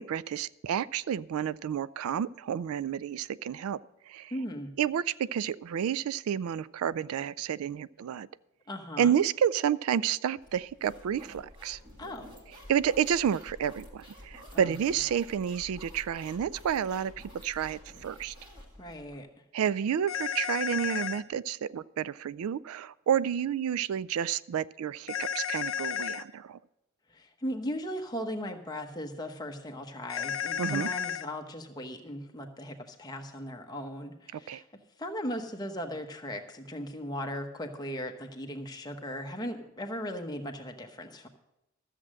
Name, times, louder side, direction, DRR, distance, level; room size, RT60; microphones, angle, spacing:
voice 1, 0.0-3.8 4.1-4.3 4.8-8.3 9.0-11.8 12.7-18.3 19.5-26.6 30.6-30.9 34.3-34.6, right 8 dB, 80° right, 19 dB, 0.3 m, -30 dB
voice 2, 4.3-4.7 8.7-9.2 12.0-12.3 14.5-14.7 18.8-19.3 27.1-34.7 35.0-41.3, equal, 20° left, 3 dB, 1.0 m, -38 dB
sound 1, 10.4-19.2, equal, 20° right, 2.0 m, -50 dB
sound 2, 20.1-21.2 25.1-26.2 30.1-31.2, left 9 dB, 65° left, 0.7 m, -32 dB
13.5 x 7.5 x 6.3 m, 0.89 s
head